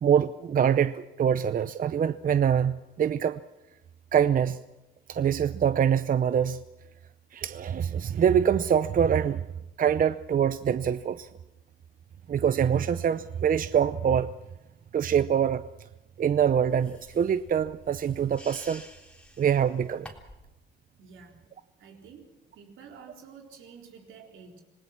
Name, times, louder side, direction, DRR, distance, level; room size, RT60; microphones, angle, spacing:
voice 1, 0.0-3.4 4.1-4.6 5.1-6.6 7.3-9.4 9.8-11.3 12.3-14.3 14.9-15.6 16.2-18.8 19.4-20.1, right 8 dB, 45° right, 13 dB, 0.6 m, -24 dB
sound 1, 16.7-20.5, equal, 5° left, 3.6 m, -50 dB
voice 2, 21.0-21.4 21.8-24.6, right 6 dB, 80° right, 2 dB, 3.9 m, -50 dB
26.5 x 19.0 x 6.0 m, 0.95 s
cardioid pair, 90°, 20 cm